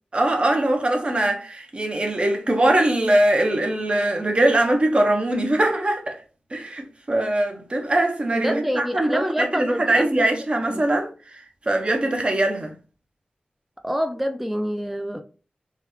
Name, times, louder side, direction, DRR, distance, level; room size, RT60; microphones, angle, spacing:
voice 1, 0.1-6.2 6.5-11.1 11.7-12.7, right 1 dB, 40° right, 0.7 m, -21 dB
voice 2, 8.3-10.3 10.7-10.8 13.8-15.2, equal, 5° right, 0.3 m, -27 dB
3.6 x 2.2 x 3.0 m
wide cardioid pair, 95°, 3 cm